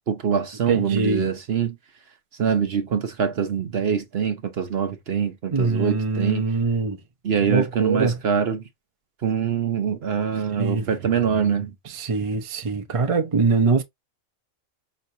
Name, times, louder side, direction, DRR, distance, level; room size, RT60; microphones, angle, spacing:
voice 1, 0.1-1.8 2.4-6.5 7.2-8.6 9.2-11.7, right 7 dB, 55° right, 0.9 m, -24 dB
voice 2, 0.7-1.3 5.5-7.0 7.4-8.2 10.6-10.8 11.9-13.8, right 4 dB, 35° right, 0.6 m, -23 dB
5.7 x 3.2 x 2.6 m
omnidirectional pair, 1.4 m